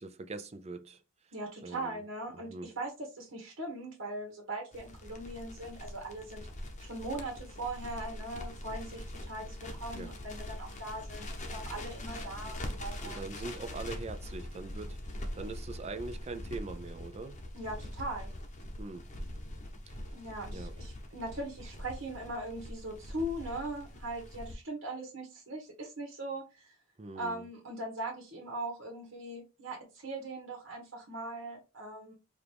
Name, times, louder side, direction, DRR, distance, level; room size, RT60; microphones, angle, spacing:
voice 1, 0.0-1.3 1.6-2.0 2.3-2.7 9.9-10.2 13.0-15.0 15.3-17.4 18.8-19.1 19.9-20.0 20.5-20.8 27.0-27.5, right 3 dB, 30° right, 0.5 m, -42 dB
voice 2, 1.3-6.4 6.8-13.2 17.5-18.3 20.1-26.7 27.1-32.1, right 1 dB, 75° right, 1.3 m, -40 dB
Crackle, 4.7-24.5, left 1 dB, 35° left, 0.8 m, -43 dB
4.9 x 2.5 x 3.4 m
head